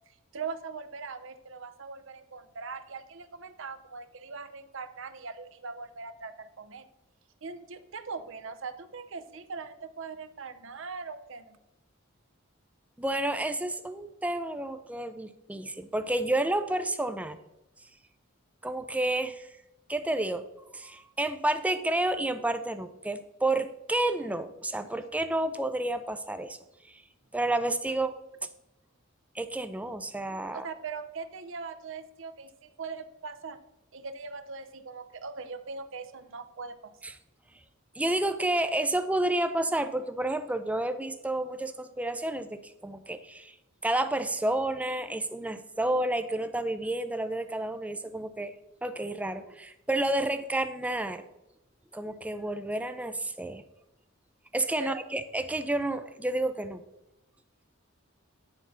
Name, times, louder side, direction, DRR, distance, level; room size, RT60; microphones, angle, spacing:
voice 1, 0.3-6.9 7.4-11.6 30.5-33.6 33.9-36.9 54.8-55.0, right 4 dB, 60° right, 11 dB, 0.6 m, -40 dB
voice 2, 13.0-17.4 18.6-19.5 19.9-20.4 20.7-26.6 26.9-27.0 27.3-28.1 29.3-30.7 37.0-37.1 38.0-43.5 43.8-48.5 48.8-51.2 51.9-53.6 54.5-56.8, right 1 dB, 5° right, 10 dB, 0.4 m, -30 dB
9.7 x 4.1 x 5.5 m, 0.92 s
head